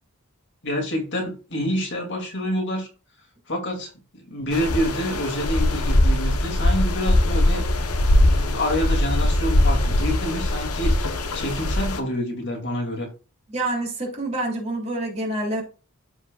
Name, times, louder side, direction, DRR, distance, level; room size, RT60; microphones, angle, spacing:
voice 1, 0.6-2.9 3.5-7.6 8.1-11.0 11.3-13.1, equal, 55° left, 2.7 m, -27 dB
sound 1, 4.5-12.0, left 1 dB, 85° left, 1.1 m, -21 dB
voice 2, 13.5-15.6, right 2 dB, 30° right, 3.1 m, -27 dB
13.5 x 5.3 x 2.5 m
head